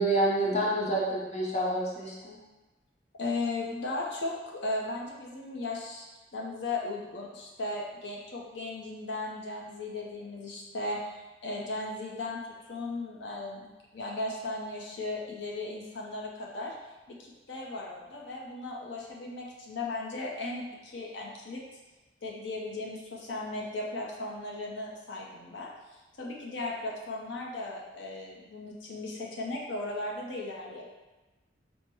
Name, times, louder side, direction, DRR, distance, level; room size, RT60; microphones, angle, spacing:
voice 1, 0.0-2.4, right 1 dB, 35° left, -4 dB, 0.7 m, -28 dB
voice 2, 3.2-6.0 6.3-12.4 12.7-16.7 17.1-21.6 22.2-30.9, left 2 dB, 75° left, -2 dB, 0.7 m, -36 dB
4.5 x 2.1 x 4.5 m, 1.1 s
head